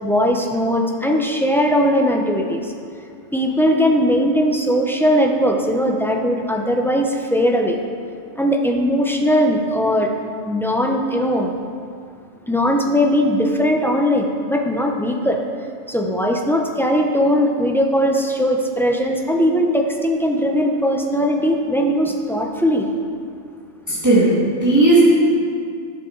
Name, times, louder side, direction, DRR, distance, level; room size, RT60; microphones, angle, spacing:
voice 1, 0.0-2.7 3.3-7.8 8.4-11.5 12.5-15.4 15.9-22.9, equal, ahead, 1 dB, 0.6 m, -19 dB
voice 2, 23.9-25.1, right 2 dB, 15° right, -9 dB, 2.1 m, -15 dB
17.0 x 7.0 x 3.9 m, 2.3 s
omnidirectional pair, 1.3 m